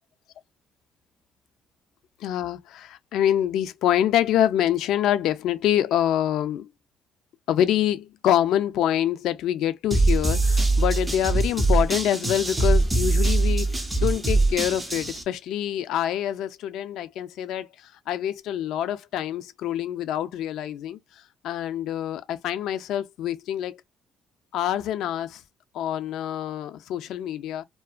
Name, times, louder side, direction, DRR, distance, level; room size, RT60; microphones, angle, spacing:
voice 1, 2.2-6.7 7.5-21.0 21.4-23.8 24.5-25.4 25.7-27.6, left 11 dB, 75° left, 0.3 m, -26 dB
sound 1, 9.9-15.2, right 2 dB, 15° right, 0.5 m, -22 dB
2.5 x 2.2 x 2.3 m
cardioid pair, 130°, 0 cm